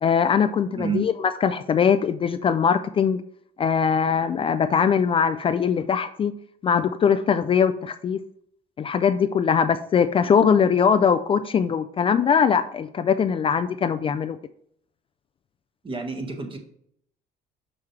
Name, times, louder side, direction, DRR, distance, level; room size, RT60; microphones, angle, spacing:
voice 1, 0.0-3.2 3.6-6.3 6.6-8.2 8.8-14.4, left 7 dB, 35° left, 9 dB, 0.3 m, -21 dB
voice 2, 0.7-1.1 15.8-16.6, right 5 dB, 30° right, 3 dB, 1.4 m, -29 dB
6.2 x 5.8 x 3.2 m, 0.68 s
cardioid pair, 110°, 17 cm